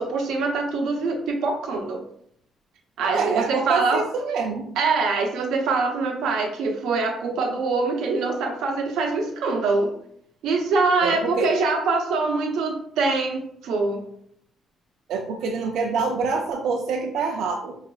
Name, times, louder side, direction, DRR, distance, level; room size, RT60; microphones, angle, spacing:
voice 1, 0.0-2.0 3.0-4.0 4.8-9.9 10.4-14.0, right 3 dB, 90° right, 2 dB, 0.8 m, -24 dB
voice 2, 3.0-4.7 11.0-11.5 15.1-17.8, right 4 dB, 70° right, 2 dB, 0.4 m, -26 dB
5.0 x 3.2 x 2.3 m, 0.66 s
cardioid pair, 175°, 0 cm